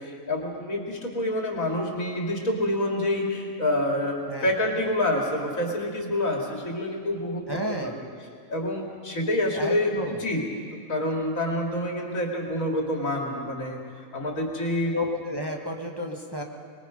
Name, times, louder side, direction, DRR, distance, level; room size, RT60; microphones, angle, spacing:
voice 1, 0.0-7.6 7.8-7.9 8.5-10.4 10.7-13.8 14.1-14.9, left 1 dB, 80° left, 0 dB, 3.1 m, -27 dB
voice 2, 7.5-8.0 9.5-10.2 14.9-16.4, left 1 dB, 20° right, 1 dB, 1.4 m, -31 dB
24.5 x 21.0 x 5.2 m, 2.2 s
omnidirectional pair, 1.4 m